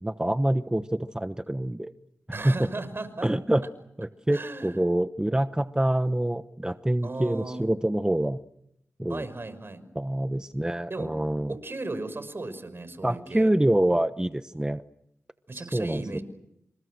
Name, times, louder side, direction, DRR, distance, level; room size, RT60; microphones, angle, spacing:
voice 1, 0.0-1.9 2.3-2.7 3.2-3.6 4.0-8.4 9.0-9.2 10.0-11.5 13.0-14.8 15.5-16.2, right 1 dB, 15° right, 10 dB, 1.1 m, -26 dB
voice 2, 2.3-3.3 4.3-4.8 7.0-7.7 9.1-9.8 10.9-11.1 11.5-13.5 15.5-16.2, right 2 dB, 45° right, 12 dB, 5.9 m, -36 dB
29.0 x 27.5 x 6.5 m, 0.77 s
cardioid pair, 40°, 5 cm